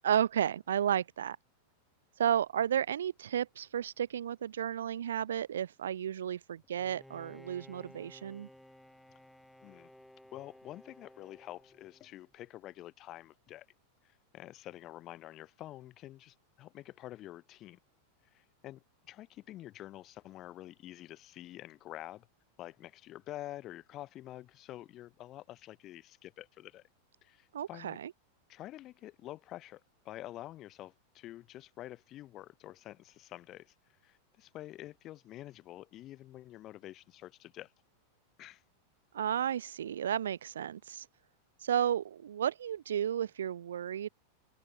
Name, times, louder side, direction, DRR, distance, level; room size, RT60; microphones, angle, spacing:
voice 1, 0.0-1.4 2.2-8.5 27.5-28.1 39.1-41.1 41.6-44.1, right 9 dB, 65° right, 1.0 m, -32 dB
Bowed string instrument, 6.8-12.3, left 1 dB, ahead, 2.5 m, -56 dB
voice 2, 10.3-13.7 14.0-17.8 18.3-22.3 22.6-26.8 27.2-28.0 28.5-33.7 34.0-37.7 38.4-38.6, left 14 dB, 35° left, 2.1 m, -48 dB
open air
figure-of-eight pair, 90°, 0 cm